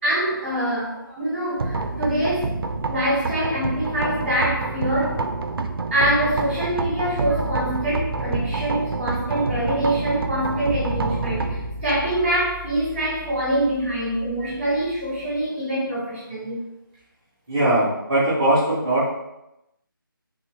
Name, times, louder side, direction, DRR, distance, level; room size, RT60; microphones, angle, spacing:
voice 1, 0.0-2.5 2.9-5.2 5.9-16.6, right 1 dB, 35° right, -7 dB, 1.2 m, -24 dB
sound 1, 1.6-15.4, right 3 dB, 90° right, 0.4 m, -28 dB
voice 2, 17.5-19.1, right 1 dB, 10° right, -11 dB, 0.6 m, -20 dB
3.3 x 2.4 x 3.1 m, 0.88 s
figure-of-eight pair, 175°, 12 cm